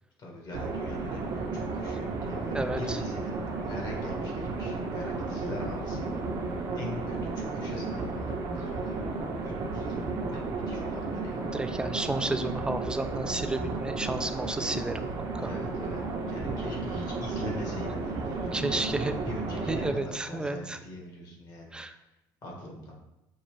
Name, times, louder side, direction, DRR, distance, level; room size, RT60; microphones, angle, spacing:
voice 1, 0.2-9.0 9.4-11.4 12.1-12.2 15.4-16.0 16.3-22.0 22.4-22.9, left 1 dB, 50° left, -1 dB, 1.5 m, -42 dB
sound 1, 0.5-19.9, right 3 dB, 50° right, 0.9 m, -33 dB
voice 2, 2.5-3.0 11.4-15.5 18.5-19.1 19.7-20.8 21.7-22.0, right 2 dB, 10° right, 9 dB, 0.4 m, -32 dB
5.5 x 2.4 x 3.2 m, 0.94 s
supercardioid pair, 90°, 9 cm